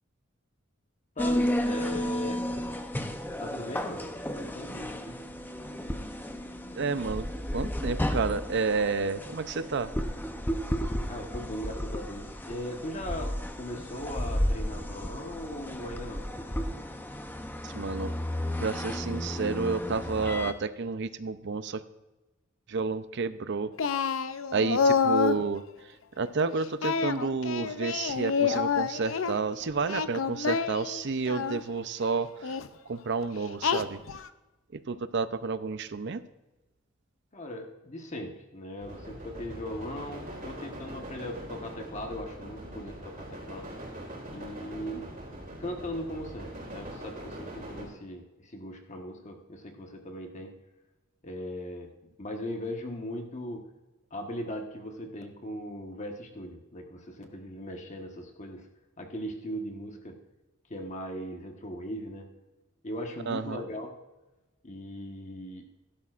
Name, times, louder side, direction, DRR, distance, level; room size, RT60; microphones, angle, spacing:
voice 1, 1.2-2.4 3.4-4.1 4.3-5.2 11.1-16.3 37.3-43.7 44.3-45.1 45.6-50.5 51.2-51.9 52.2-53.7 54.1-58.7 59.0-60.2 60.7-62.3 62.8-64.0 64.6-65.7, equal, 35° left, 3 dB, 1.2 m, -39 dB
sound 1, 1.2-20.5, equal, 10° left, 0.7 m, -33 dB
voice 2, 6.8-7.3 7.5-9.9 17.6-18.1 18.6-21.8 22.7-23.7 24.5-25.6 26.2-32.6 32.9-34.0 34.7-36.2 63.3-63.6, right 4 dB, 60° right, 13 dB, 0.6 m, -30 dB
Singing, 23.8-25.4 26.8-29.3 29.8-31.6 32.4-32.7 33.6-34.3, left 5 dB, 80° left, 0.6 m, -28 dB
sound 2, 38.8-47.8, right 1 dB, 40° right, 4.3 m, -42 dB
15.5 x 12.0 x 2.5 m, 1.1 s
head